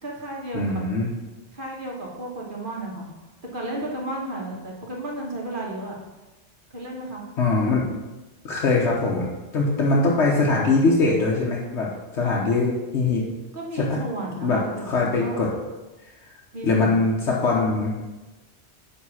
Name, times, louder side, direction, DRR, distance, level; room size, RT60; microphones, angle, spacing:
voice 1, 0.0-0.8 1.5-3.1 3.5-6.0 6.7-7.2 12.2-12.6 13.5-15.4 16.5-17.0, right 1 dB, 50° right, -2 dB, 1.5 m, -33 dB
voice 2, 0.5-1.1 7.4-7.9 8.4-9.3 9.5-13.2 13.7-14.0 14.4-14.6 14.8-15.5 16.6-18.0, left 3 dB, 85° left, -4 dB, 1.3 m, -22 dB
9.4 x 3.5 x 5.7 m, 1.1 s
omnidirectional pair, 1.1 m